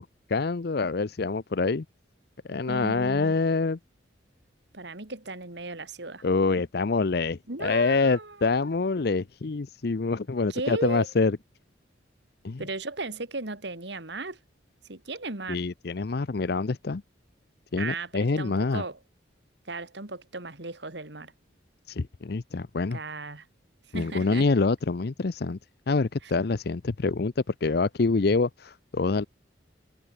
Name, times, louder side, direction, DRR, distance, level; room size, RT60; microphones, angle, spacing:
voice 1, 0.0-1.8 2.5-3.8 6.2-11.4 12.4-12.6 15.5-17.0 17.7-18.8 21.9-23.0 23.9-25.6 25.9-29.2, left 3 dB, 55° left, 0.6 m, -26 dB
voice 2, 2.7-3.4 4.7-6.2 7.5-8.6 10.5-11.1 12.6-14.4 14.8-15.6 17.8-19.0 19.6-21.3 22.9-23.5 23.9-24.5 26.2-26.3, right 3 dB, 65° right, 2.5 m, -36 dB
head